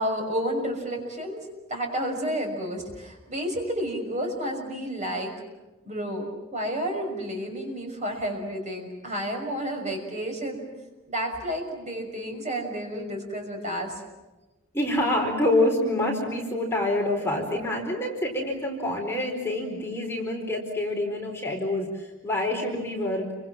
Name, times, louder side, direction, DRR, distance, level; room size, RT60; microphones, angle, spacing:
voice 1, 0.0-1.4 1.7-5.3 5.8-10.7 11.1-14.0, equal, 30° right, 2 dB, 6.2 m, -31 dB
voice 2, 14.7-23.3, left 1 dB, 10° left, -1 dB, 4.4 m, -26 dB
30.0 x 25.5 x 7.5 m, 1.1 s
head